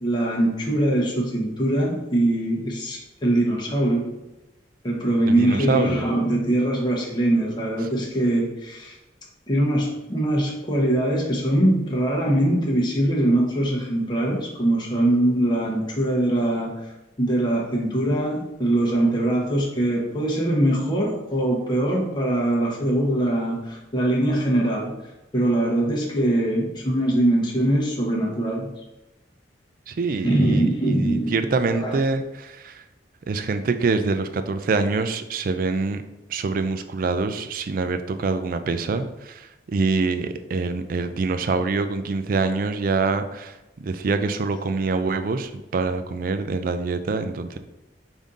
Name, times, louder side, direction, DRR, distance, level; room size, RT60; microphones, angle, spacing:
voice 1, 0.0-4.1 4.8-9.0 9.5-16.7 17.2-24.9 25.3-28.7 30.2-31.3 31.8-31.9, right 1 dB, 25° left, -3 dB, 0.8 m, -22 dB
voice 2, 5.2-6.1 29.9-32.8 33.3-36.0 36.3-47.6, right 3 dB, 50° right, 9 dB, 0.3 m, -25 dB
5.2 x 2.6 x 3.7 m, 0.97 s
head